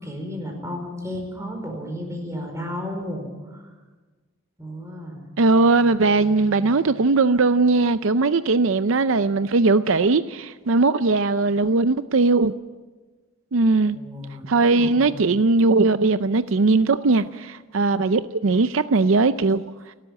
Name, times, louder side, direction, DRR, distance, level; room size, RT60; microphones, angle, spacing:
voice 1, 0.0-3.7 4.6-5.3 13.8-15.3, left 1 dB, 15° right, 3 dB, 4.7 m, -33 dB
voice 2, 5.4-12.5 13.5-14.0 14.5-19.9, right 3 dB, 70° right, 12 dB, 0.6 m, -19 dB
29.5 x 12.5 x 8.3 m, 1.3 s
head